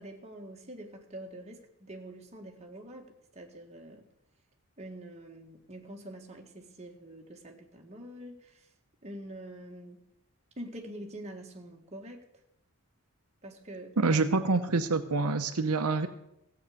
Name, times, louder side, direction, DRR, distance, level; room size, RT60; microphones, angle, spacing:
voice 1, 0.0-3.1 3.3-4.1 4.8-8.7 9.0-10.0 10.6-12.2 13.4-14.0, right 1 dB, 30° right, 1 dB, 1.7 m, -45 dB
voice 2, 14.0-16.1, right 3 dB, 85° right, 8 dB, 0.8 m, -26 dB
15.5 x 8.1 x 6.5 m, 0.81 s
head